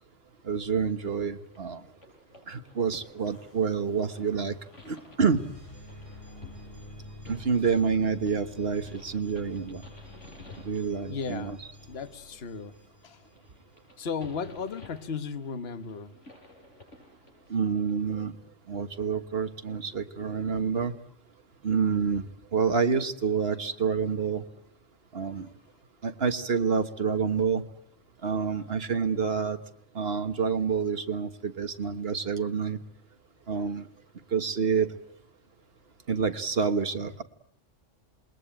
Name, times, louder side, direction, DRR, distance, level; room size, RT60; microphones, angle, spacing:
voice 1, 0.4-1.8 2.5-4.6 4.8-5.4 7.3-9.8 10.6-11.6 17.5-18.3 18.7-20.9 21.6-24.4 25.1-25.5 26.0-27.6 28.2-29.6 29.9-32.8 33.5-33.9 34.3-34.9 36.1-37.2, right 6 dB, 50° right, 9 dB, 1.7 m, -28 dB
sound 1, 1.2-17.9, left 2 dB, 70° left, 7.8 m, -53 dB
sound 2, 3.2-14.0, left 1 dB, 25° left, 8.3 m, -49 dB
voice 2, 11.1-11.6 11.9-12.7 13.0-13.2 14.0-16.1, left 5 dB, 55° left, 11 dB, 1.5 m, -35 dB
27.5 x 21.5 x 8.8 m, 0.68 s
omnidirectional pair, 1.3 m